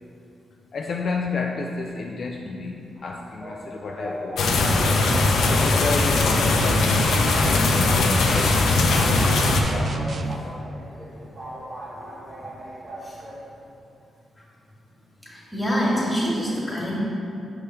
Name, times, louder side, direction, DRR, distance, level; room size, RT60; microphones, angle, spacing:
voice 1, 0.7-4.7 5.5-10.2, left 4 dB, 45° left, 0 dB, 0.3 m, -31 dB
sound 1, 3.0-13.4, equal, 25° right, 1.0 m, -38 dB
sound 2, 4.4-9.6, left 3 dB, 80° left, 0.6 m, -20 dB
sound 3, 6.6-10.4, right 3 dB, 40° right, 0.3 m, -30 dB
voice 2, 11.0-11.4 11.9-12.1 13.0-13.4 15.2-17.0, equal, 10° left, -6 dB, 1.5 m, -27 dB
6.8 x 3.3 x 5.6 m, 2.7 s
wide cardioid pair, 165°, 0 cm